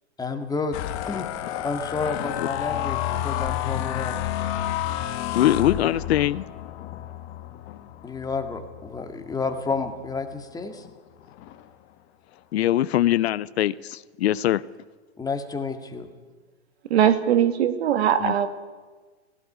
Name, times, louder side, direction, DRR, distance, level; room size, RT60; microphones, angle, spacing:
voice 1, 0.2-0.8 1.1-1.3 1.6-4.1 8.0-10.8 15.2-16.1, left 4 dB, 10° left, 6 dB, 1.9 m, -30 dB
sound 1, 0.7-10.1 10.6-10.9 11.2-11.7, left 12 dB, 40° left, 1.5 m, -31 dB
voice 2, 5.3-6.4 12.5-14.6 18.2-18.3, left 13 dB, 65° left, 19 dB, 0.7 m, -22 dB
voice 3, 16.9-18.5, right 9 dB, 65° right, 10 dB, 1.9 m, -20 dB
17.0 x 16.0 x 9.8 m, 1.4 s
hypercardioid pair, 120°, 34 cm